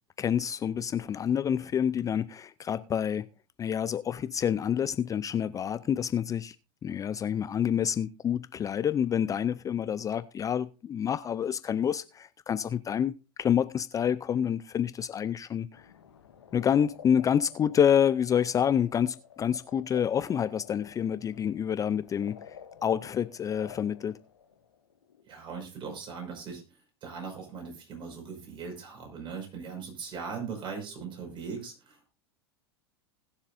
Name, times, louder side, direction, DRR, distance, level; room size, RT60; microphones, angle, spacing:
voice 1, 0.2-3.3 3.6-6.6 6.8-13.1 13.4-15.9 16.5-22.6 22.8-24.2, left 8 dB, 25° left, 0.5 m, -28 dB
sound 1, 15.7-25.2, left 8 dB, 85° left, 1.7 m, -51 dB
voice 2, 25.2-26.6 27.0-32.1, right 5 dB, 40° right, 5.6 m, -39 dB
20.0 x 7.2 x 2.6 m
hypercardioid pair, 90°, 13 cm